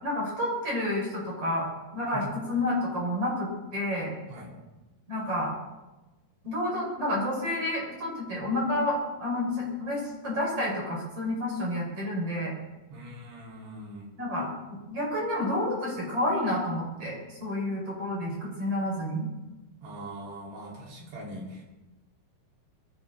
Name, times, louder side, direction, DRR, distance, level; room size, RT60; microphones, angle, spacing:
voice 1, 0.0-1.7 1.9-4.1 5.1-5.5 6.4-12.5 14.2-14.5 14.9-19.3, left 1 dB, 35° right, -2 dB, 5.8 m, -29 dB
voice 2, 12.9-14.1 19.8-21.6, right 1 dB, 75° right, -3 dB, 6.0 m, -41 dB
21.5 x 15.5 x 3.9 m, 1.1 s
omnidirectional pair, 4.8 m